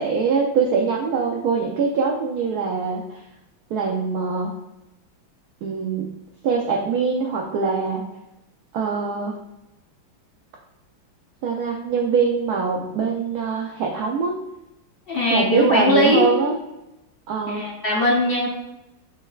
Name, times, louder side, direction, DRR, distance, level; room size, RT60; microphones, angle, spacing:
voice 1, 0.0-3.2 3.7-4.5 5.6-6.1 6.4-8.0 8.7-9.3 11.4-14.3 15.3-16.6 17.3-17.6, right 5 dB, 80° right, 0 dB, 0.8 m, -23 dB
voice 2, 15.1-16.3 17.5-18.5, equal, 55° left, -4 dB, 0.6 m, -19 dB
6.3 x 3.4 x 2.3 m, 0.92 s
omnidirectional pair, 2.2 m